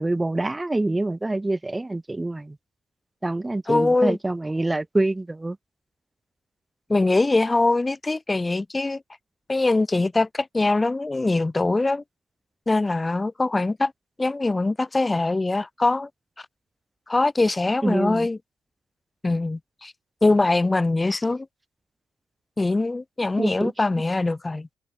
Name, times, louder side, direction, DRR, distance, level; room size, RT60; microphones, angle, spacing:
voice 1, 0.0-2.6 3.2-5.6 17.8-18.3 23.4-23.7, right 2 dB, 15° right, 4.0 m, -25 dB
voice 2, 3.7-4.2 6.9-9.0 9.5-12.0 12.7-13.9 14.2-16.1 17.1-18.4 19.2-19.9 20.2-21.5 22.6-24.7, left 2 dB, 20° left, 7.3 m, -22 dB
cardioid pair, 90°, 0 cm